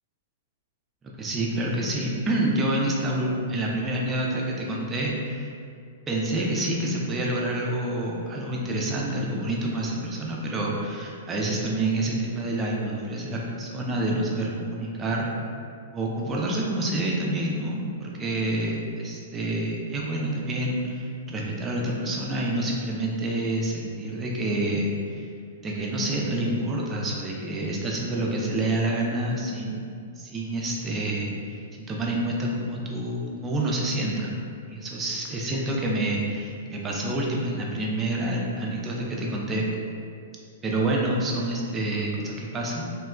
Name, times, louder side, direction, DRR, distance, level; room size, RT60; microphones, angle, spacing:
voice 1, 1.2-5.5 6.1-15.3 15.9-24.9 25.6-29.8 30.2-31.3 31.7-34.4 34.7-39.7 40.6-43.0, right 1 dB, 20° right, -2 dB, 0.4 m, -28 dB
2.8 x 2.1 x 2.2 m, 2.4 s
figure-of-eight pair, 105°, 0 cm